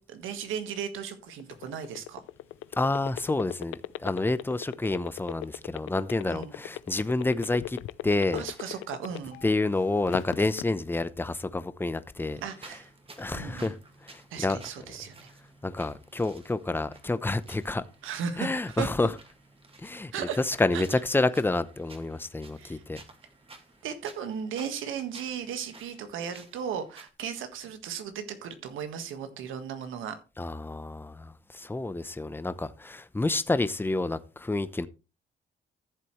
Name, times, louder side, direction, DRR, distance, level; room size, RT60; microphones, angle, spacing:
voice 1, 0.0-2.2 6.3-6.5 8.3-9.4 12.4-12.9 13.3-13.7 14.3-15.3 18.0-18.9 20.1-20.4 20.7-20.8 22.6-22.8 23.8-30.2, right 7 dB, 85° right, 1.6 m, -36 dB
sound 1, 1.3-9.5 9.9-10.6, left 16 dB, 85° left, 0.5 m, -36 dB
voice 2, 2.8-7.8 8.0-8.4 9.4-12.4 13.2-13.8 14.0-14.6 15.6-17.8 18.4-19.1 19.8-20.1 20.4-23.0 30.4-34.9, left 2 dB, 10° left, 0.8 m, -29 dB
sound 2, 12.3-27.1, right 3 dB, 30° right, 2.1 m, -54 dB
13.5 x 7.5 x 3.2 m
cardioid pair, 90°, 20 cm